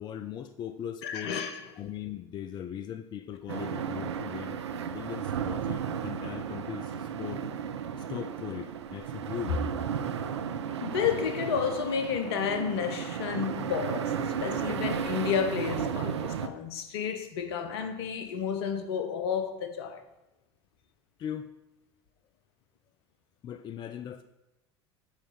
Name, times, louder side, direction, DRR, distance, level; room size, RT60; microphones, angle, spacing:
voice 1, 0.0-1.4 1.8-7.5 8.0-9.6 21.2-21.5 23.4-24.2, left 9 dB, 30° left, 0.4 m, -39 dB
voice 2, 1.0-1.7 10.8-20.0, left 7 dB, 65° left, 0.8 m, -31 dB
sound 1, 3.5-16.5, right 7 dB, 75° right, 0.4 m, -34 dB
8.2 x 4.9 x 5.0 m
figure-of-eight pair, 70°, 14 cm